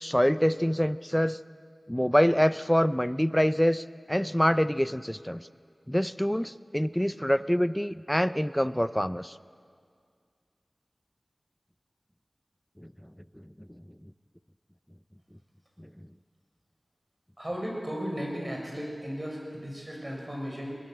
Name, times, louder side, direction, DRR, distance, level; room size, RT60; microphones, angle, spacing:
voice 1, 0.0-1.4 1.9-5.5 5.9-9.3 15.8-15.9, equal, 5° left, 14 dB, 0.6 m, -25 dB
voice 2, 17.4-20.8, equal, 20° right, -1 dB, 6.6 m, -35 dB
22.5 x 19.5 x 7.8 m, 2.1 s
wide cardioid pair, 55°, 0 cm